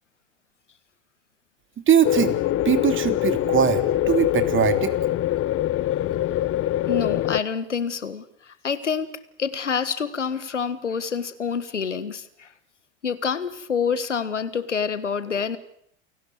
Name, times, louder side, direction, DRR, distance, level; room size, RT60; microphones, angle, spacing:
voice 1, 1.9-2.4 2.6-4.9, right 9 dB, 35° right, 10 dB, 3.2 m, -21 dB
sound 1, 2.0-7.4, left 14 dB, 40° left, 1.0 m, -23 dB
voice 2, 6.9-9.1 9.4-12.5 13.0-15.6, left 6 dB, 85° left, 15 dB, 1.6 m, -27 dB
29.0 x 18.0 x 9.8 m, 0.69 s
figure-of-eight pair, 75°, 35 cm